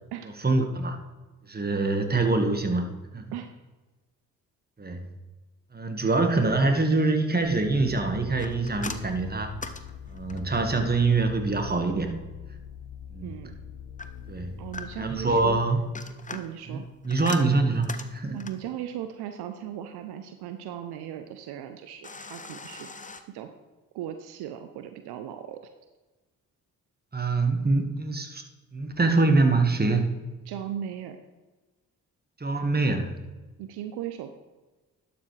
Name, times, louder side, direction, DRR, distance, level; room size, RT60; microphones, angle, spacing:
voice 1, 0.4-1.0 1.5-2.9 3.1-3.3 4.8-5.0 5.7-9.5 10.1-12.1 13.1-13.4 14.3-14.5 15.0-15.8 16.7-18.4 27.1-28.4 28.7-30.1 32.4-33.2, right 3 dB, 25° right, 5 dB, 1.5 m, -24 dB
sound 1, 7.4-15.6, left 8 dB, 70° left, 0.6 m, -43 dB
sound 2, 8.4-10.6 14.0-15.2 15.7-18.7 22.0-23.2, left 3 dB, 20° left, 0.8 m, -41 dB
voice 2, 13.2-13.6 14.6-15.6 16.3-16.9 18.3-22.9 23.3-23.5 23.9-25.6 30.5-31.2 33.6-34.3, right 10 dB, 70° right, 8 dB, 0.7 m, -37 dB
11.5 x 7.0 x 3.2 m, 1.2 s
hypercardioid pair, 40°, 40 cm